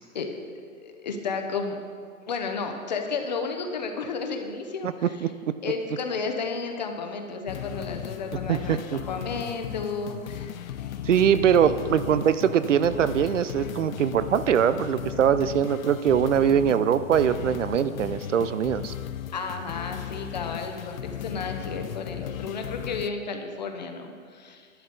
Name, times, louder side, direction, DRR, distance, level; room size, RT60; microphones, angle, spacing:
voice 1, 0.8-1.8 2.3-5.3 5.6-11.0 19.3-24.7, left 4 dB, 30° left, 5 dB, 0.8 m, -33 dB
voice 2, 4.8-5.3 8.5-9.0 11.1-18.9, right 8 dB, 65° right, 14 dB, 0.5 m, -22 dB
sound 1, 7.5-23.1, left 10 dB, 80° left, 0.6 m, -36 dB
11.0 x 10.0 x 4.0 m, 2.1 s
hypercardioid pair, 170°, 41 cm